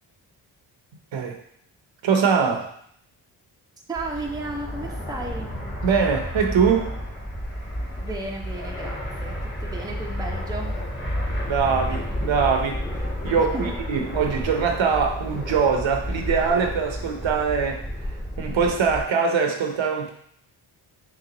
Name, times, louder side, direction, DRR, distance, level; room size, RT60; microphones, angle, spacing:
voice 1, 2.0-2.7 5.8-7.0 11.5-17.9 18.4-20.1, right 6 dB, 65° right, 3 dB, 0.7 m, -23 dB
Fixed-wing aircraft airplane, 3.9-19.1, equal, 20° left, 1.2 m, -31 dB
voice 2, 3.9-5.5 8.0-10.7 13.5-13.7, right 2 dB, 10° right, 0 dB, 0.6 m, -34 dB
3.2 x 2.9 x 3.8 m, 0.67 s
cardioid pair, 70°, 49 cm